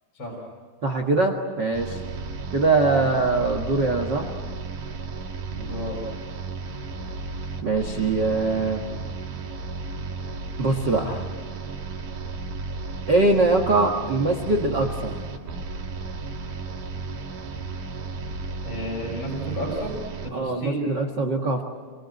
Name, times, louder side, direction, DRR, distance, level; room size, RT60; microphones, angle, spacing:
voice 1, 0.8-2.0 2.5-4.3 7.6-8.8 10.6-11.2 13.1-15.2 20.3-21.6, right 3 dB, 70° right, 6 dB, 1.0 m, -22 dB
sound 1, 1.7-20.3, right 4 dB, 50° right, 3.3 m, -34 dB
voice 2, 5.6-6.0 18.6-19.9 20.2-20.8, equal, 25° left, -2 dB, 5.8 m, -32 dB
28.0 x 23.0 x 9.1 m, 1.5 s
omnidirectional pair, 5.1 m